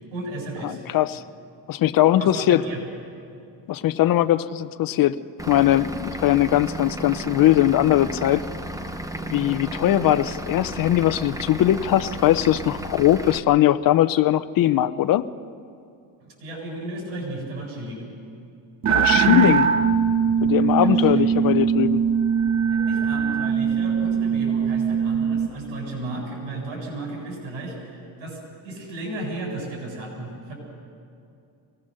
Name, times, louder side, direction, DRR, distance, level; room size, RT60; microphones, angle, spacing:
voice 1, 0.1-0.8 2.2-2.8 16.2-18.0 20.8-21.3 22.7-30.5, right 2 dB, 90° right, -1 dB, 7.7 m, -34 dB
voice 2, 0.6-1.2 1.7-2.6 3.7-5.2 5.5-8.4 9.3-15.2 18.9-19.7 20.4-22.0, left 13 dB, 50° left, 13 dB, 0.7 m, -20 dB
Vehicle / Engine, 5.4-13.4, right 1 dB, 10° right, 0.9 m, -34 dB
sound 1, 18.8-25.5, right 7 dB, 40° right, 1.0 m, -21 dB
24.5 x 19.0 x 6.6 m, 2.5 s
cardioid pair, 130°, 45 cm